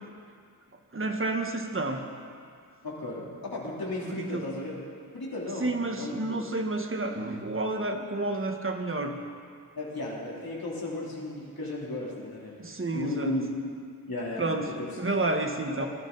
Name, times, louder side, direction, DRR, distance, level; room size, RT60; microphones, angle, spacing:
voice 1, 0.9-2.0 4.1-4.4 5.6-9.1 12.6-13.3 14.4-14.6 15.0-15.9, right 2 dB, 35° right, 4 dB, 1.3 m, -30 dB
voice 2, 2.8-4.7 5.1-6.4 9.8-12.6 12.9-13.4 14.1-15.0 15.8-15.9, left 1 dB, 65° left, -5 dB, 3.2 m, -35 dB
19.5 x 12.0 x 4.0 m, 2.3 s
wide cardioid pair, 100°, 38 cm